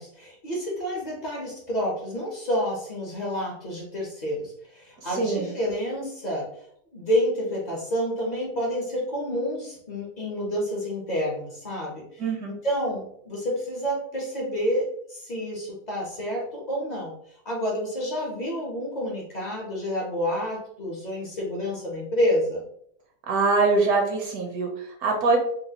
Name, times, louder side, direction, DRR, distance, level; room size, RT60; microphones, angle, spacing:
voice 1, 0.0-6.5 6.9-17.1 17.4-22.6, equal, 55° left, -3 dB, 0.4 m, -29 dB
voice 2, 5.1-5.5 12.2-12.5 23.3-25.4, right 3 dB, 70° right, 2 dB, 1.0 m, -23 dB
4.0 x 2.3 x 2.7 m, 0.67 s
omnidirectional pair, 1.9 m